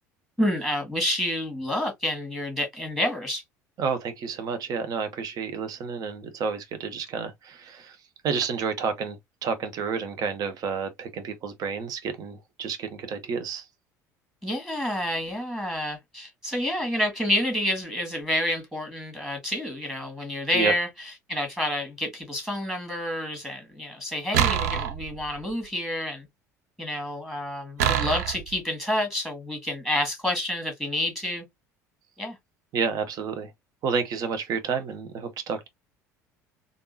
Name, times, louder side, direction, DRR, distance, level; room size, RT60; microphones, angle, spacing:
voice 1, 0.4-3.4 14.4-26.3 26.8-31.5 32.2-32.4, left 1 dB, 5° right, 1.7 m, -29 dB
voice 2, 3.8-8.0 8.2-9.2 9.4-13.6 20.5-20.7 32.7-33.5 33.8-35.7, right 5 dB, 45° right, 0.8 m, -30 dB
sound 1, 24.3-25.5 27.8-28.6, right 9 dB, 65° right, 0.4 m, -25 dB
3.5 x 2.6 x 2.6 m
figure-of-eight pair, 65°, 9 cm